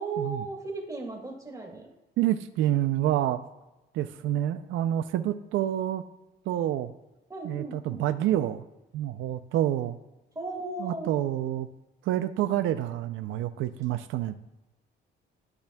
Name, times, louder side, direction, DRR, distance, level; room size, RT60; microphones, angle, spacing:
voice 1, 0.0-1.9 7.3-8.0 10.4-11.2, right 3 dB, 15° right, 0 dB, 2.3 m, -36 dB
voice 2, 2.2-3.4 3.9-6.0 6.5-6.9 7.4-8.6 8.9-10.0 10.8-11.7 12.0-14.4, right 12 dB, 85° right, 10 dB, 0.4 m, -28 dB
12.5 x 6.8 x 2.3 m, 1.0 s
cardioid pair, 90°, 20 cm